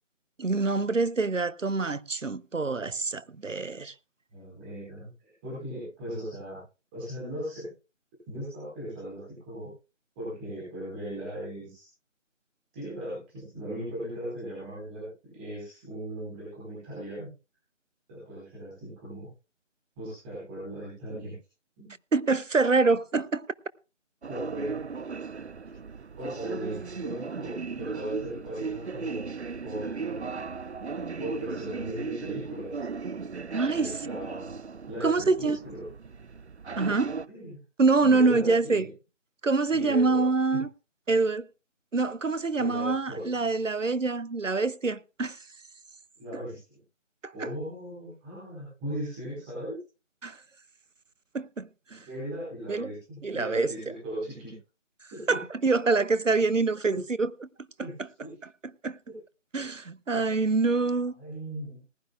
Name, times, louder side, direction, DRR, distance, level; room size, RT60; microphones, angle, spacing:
voice 1, 0.4-3.9 22.1-23.4 33.5-33.9 35.0-35.6 36.8-37.1 37.8-38.9 39.4-40.7 41.1-41.5 41.9-45.4 47.2-47.5 50.2-50.4 51.3-52.0 52.7-52.9 53.2-53.7 55.3-57.5 58.8-59.0 59.5-61.1, right 3 dB, 85° right, 0.9 m, -25 dB
voice 2, 4.3-6.6 6.9-7.7 8.3-9.7 10.1-11.9 12.7-17.3 18.1-19.3 20.0-21.3 21.8-21.9 24.3-24.7 26.1-29.3 29.6-30.3 31.2-32.8 33.8-34.5 34.9-35.8 36.8-36.9 37.3-37.6 38.0-38.9 39.7-40.3 40.5-40.6 42.6-43.4 46.2-46.8 47.3-49.8 52.0-54.6 55.1-55.4 56.9-57.0 57.8-57.9 58.2-58.3 59.0-59.2 61.2-61.8, right 1 dB, 10° right, 4.6 m, -38 dB
sound 1, 24.2-37.3, right 5 dB, 60° right, 0.6 m, -37 dB
20.0 x 11.5 x 2.4 m
figure-of-eight pair, 165°, 37 cm